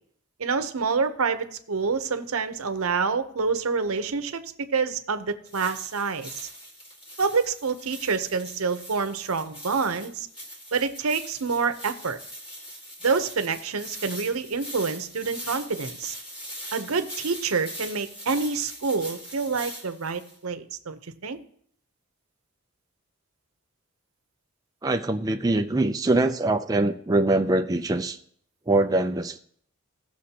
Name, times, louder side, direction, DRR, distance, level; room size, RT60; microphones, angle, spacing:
voice 1, 0.4-6.4 7.2-10.3 10.7-12.2 13.0-16.1 16.7-21.4, right 5 dB, 90° right, 9 dB, 0.8 m, -27 dB
sound 1, 5.5-20.4, equal, 25° left, 1.9 m, -41 dB
voice 2, 24.8-28.2 28.7-29.4, right 2 dB, 15° right, 5 dB, 0.4 m, -23 dB
16.5 x 6.2 x 2.9 m, 0.63 s
head